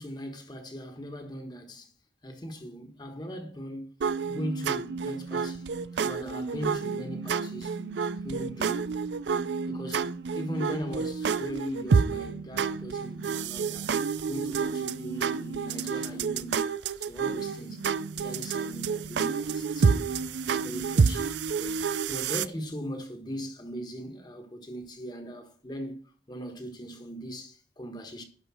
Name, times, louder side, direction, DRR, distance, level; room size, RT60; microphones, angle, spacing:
voice 1, 0.0-1.9 2.2-3.9 4.3-5.7 6.0-9.0 9.7-10.1 10.3-13.9 14.3-16.7 17.0-17.9 18.1-20.1 20.4-26.0 26.3-28.2, equal, 25° left, 1.4 m, -39 dB
sound 1, 4.0-22.5, right 5 dB, 85° right, 0.5 m, -29 dB
11.5 x 4.9 x 6.2 m
head